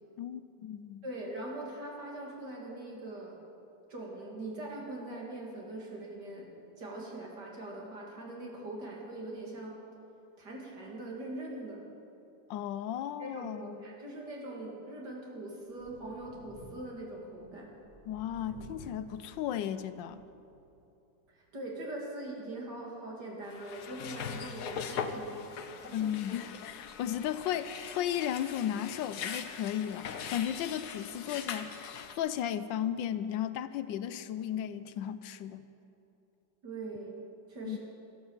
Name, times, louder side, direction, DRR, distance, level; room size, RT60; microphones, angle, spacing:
voice 1, 0.2-1.0 12.5-14.0 18.1-20.2 25.9-31.9 32.1-35.6 37.6-37.8, left 10 dB, 80° left, 13 dB, 1.3 m, -35 dB
voice 2, 1.0-3.4 3.9-6.5 6.8-9.8 10.4-11.9 13.2-17.7 21.5-25.3 25.6-26.1 36.6-37.2 37.5-37.8, right 2 dB, 65° right, -2 dB, 3.2 m, -42 dB
Thunder, 15.7-20.8 21.2-21.3 22.7-22.8, right 1 dB, 20° right, 2.6 m, -53 dB
sound 1, 23.4-32.1, left 7 dB, 65° left, 1.3 m, -41 dB
14.0 x 12.5 x 7.3 m, 2.8 s
omnidirectional pair, 2.0 m